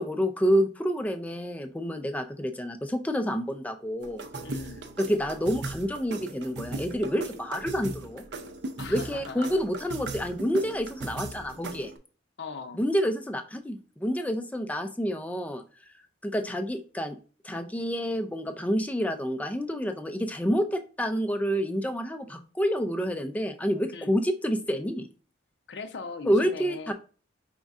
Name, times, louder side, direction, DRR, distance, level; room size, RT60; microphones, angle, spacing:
voice 1, 0.0-4.2 5.0-8.2 8.9-11.9 12.7-15.6 16.2-17.2 17.4-25.1 26.3-26.9, equal, 10° left, 7 dB, 0.4 m, -28 dB
sound 1, 4.0-12.0, right 2 dB, 60° right, 0.5 m, -38 dB
voice 2, 4.4-4.8 8.8-9.6 12.4-12.8 23.9-24.1 25.7-26.9, left 4 dB, 60° left, 8 dB, 0.5 m, -39 dB
5.2 x 3.5 x 2.4 m, 0.37 s
head